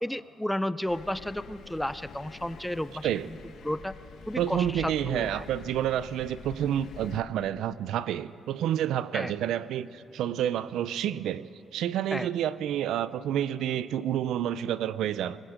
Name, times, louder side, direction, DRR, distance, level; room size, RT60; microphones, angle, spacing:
voice 1, 0.0-3.4 3.6-3.9 4.3-5.3 9.1-9.3 12.1-12.3, left 1 dB, 5° left, 0.4 m, -32 dB
Thunder, 0.9-7.2, left 6 dB, 75° left, 1.7 m, -46 dB
voice 2, 4.4-15.4, right 10 dB, 85° right, 0.5 m, -29 dB
25.5 x 21.5 x 5.1 m
cardioid pair, 155°, 0 cm